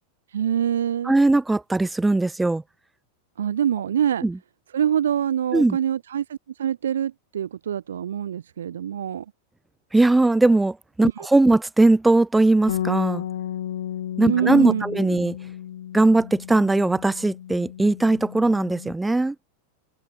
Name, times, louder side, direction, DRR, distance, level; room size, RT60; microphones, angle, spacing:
voice 1, 0.3-1.1 3.4-4.2 4.7-9.3 14.2-15.1, right 9 dB, 65° right, 0.5 m, -25 dB
voice 2, 1.1-2.6 4.2-4.3 5.5-5.8 9.9-13.2 14.2-15.4 15.9-19.3, right 2 dB, 5° right, 0.5 m, -19 dB
Bass guitar, 12.7-18.9, left 11 dB, 60° left, 3.8 m, -33 dB
figure-of-eight pair, 90°, 0 cm